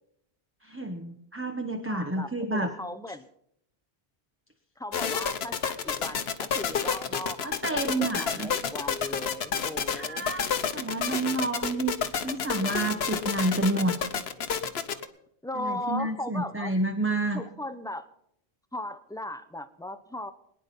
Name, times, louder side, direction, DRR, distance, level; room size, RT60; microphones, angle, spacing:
voice 1, 0.6-2.7 7.4-8.5 9.9-11.9 12.2-14.0 15.5-17.4, right 2 dB, 15° right, 5 dB, 0.9 m, -29 dB
voice 2, 1.9-3.3 4.8-10.3 15.4-16.7 17.3-18.1 18.7-20.3, left 1 dB, 5° left, 10 dB, 0.6 m, -37 dB
sound 1, 4.9-15.1, left 7 dB, 70° left, 1.1 m, -29 dB
22.5 x 9.9 x 5.3 m, 0.75 s
omnidirectional pair, 1.1 m